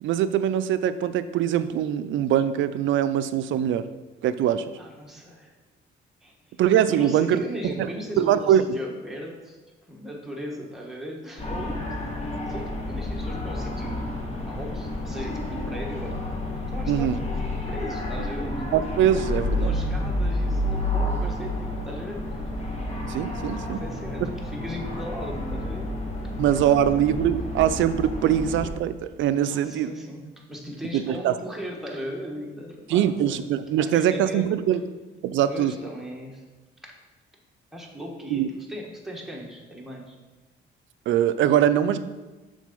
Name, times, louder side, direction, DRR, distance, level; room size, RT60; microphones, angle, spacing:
voice 1, 0.0-3.9 4.2-4.7 6.6-8.6 16.9-17.2 18.7-19.8 23.0-23.8 26.4-29.9 30.9-31.4 32.9-34.8 35.2-35.7 38.3-38.5 41.1-42.0, right 10 dB, 75° right, 12 dB, 0.4 m, -22 dB
voice 2, 4.8-5.6 6.2-9.6 9.9-12.0 12.5-14.2 14.4-16.2 16.7-17.2 17.7-18.6 19.6-22.5 23.7-25.9 29.5-33.4 33.8-34.5 35.5-36.4 36.8-36.9 37.7-40.1, equal, ahead, -2 dB, 1.5 m, -38 dB
sound 1, 11.4-28.7, left 1 dB, 35° left, 1.4 m, -30 dB
6.4 x 3.8 x 5.3 m, 1.2 s
cardioid pair, 90°, 20 cm